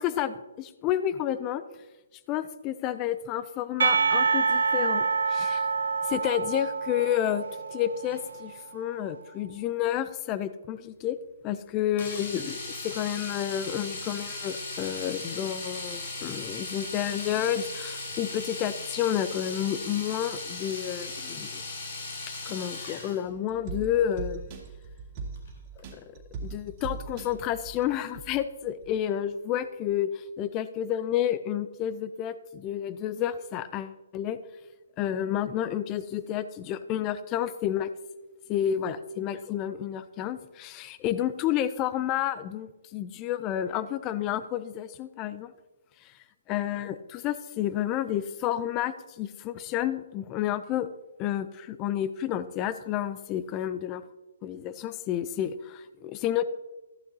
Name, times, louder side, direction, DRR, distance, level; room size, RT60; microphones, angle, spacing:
voice 1, 0.0-1.6 2.3-5.6 6.1-7.5 7.7-11.2 11.4-21.6 22.5-24.5 25.9-26.0 26.4-34.4 35.0-37.9 38.5-45.5 46.0-46.1 46.5-50.9 51.2-54.0 54.4-56.4, left 11 dB, 20° left, 14 dB, 0.4 m, -30 dB
Percussion, 3.8-8.6, right 5 dB, 75° right, 1.0 m, -27 dB
Domestic sounds home sounds, 12.0-23.2 25.4-25.5 25.8-25.9, left 3 dB, 55° left, 3.7 m, -37 dB
sound 1, 23.3-28.4 28.8-28.9, right 4 dB, 30° right, 2.3 m, -40 dB
14.0 x 11.0 x 2.7 m, 1.1 s
hypercardioid pair, 160°, 0 cm